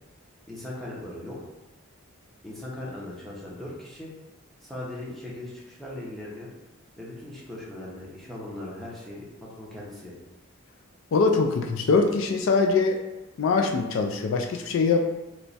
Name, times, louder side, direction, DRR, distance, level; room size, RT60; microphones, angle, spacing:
voice 1, 0.5-1.4 2.4-4.1 4.6-6.5 7.0-10.1, left 1 dB, ahead, -6 dB, 0.6 m, -39 dB
voice 2, 11.1-13.0 13.4-15.0, left 4 dB, 65° left, 3 dB, 0.3 m, -22 dB
3.0 x 2.2 x 4.0 m, 1.0 s
head